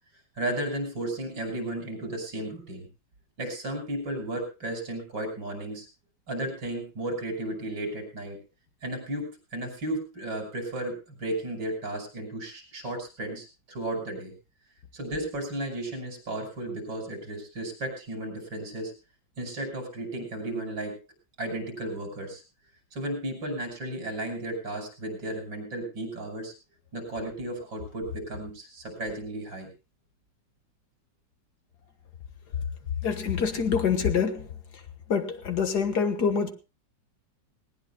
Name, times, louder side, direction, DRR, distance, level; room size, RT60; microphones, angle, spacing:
voice 1, 0.4-2.9 3.4-5.9 6.3-8.4 8.8-14.3 14.9-18.9 19.4-21.0 21.4-22.4 22.9-26.5 26.9-29.7, right 1 dB, 90° right, 6.7 m, -34 dB
voice 2, 33.0-34.8 35.1-36.5, left 6 dB, 60° left, 1.9 m, -26 dB
19.5 x 19.0 x 2.2 m
omnidirectional pair, 2.0 m